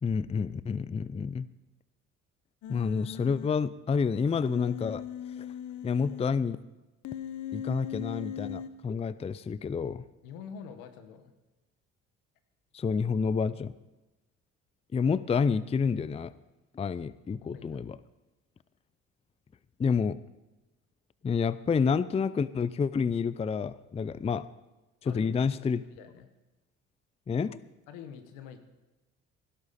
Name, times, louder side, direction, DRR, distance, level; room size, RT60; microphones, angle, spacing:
voice 1, 0.0-1.5 2.7-5.0 5.8-6.6 7.5-10.0 12.7-13.7 14.9-16.3 16.7-18.0 19.8-20.2 21.2-24.5 25.0-25.8 27.3-27.6, left 5 dB, 20° left, 17 dB, 0.4 m, -29 dB
Human voice, 2.6-3.5 4.5-6.2 7.0-8.7, left 9 dB, 60° left, 0.9 m, -39 dB
voice 2, 10.2-11.3 17.5-17.8 25.0-26.3 27.9-28.6, left 7 dB, 80° left, 8 dB, 1.5 m, -46 dB
16.5 x 12.0 x 4.2 m, 1.1 s
hypercardioid pair, 65°, 33 cm